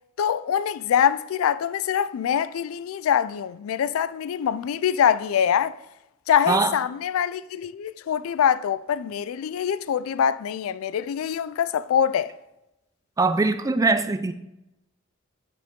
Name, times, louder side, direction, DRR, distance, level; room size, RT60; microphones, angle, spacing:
voice 1, 0.2-5.7 6.3-12.3, left 8 dB, 85° left, 0.3 m, -24 dB
voice 2, 6.5-6.8 13.2-14.3, right 3 dB, 15° right, 0.3 m, -22 dB
8.6 x 4.7 x 3.7 m
head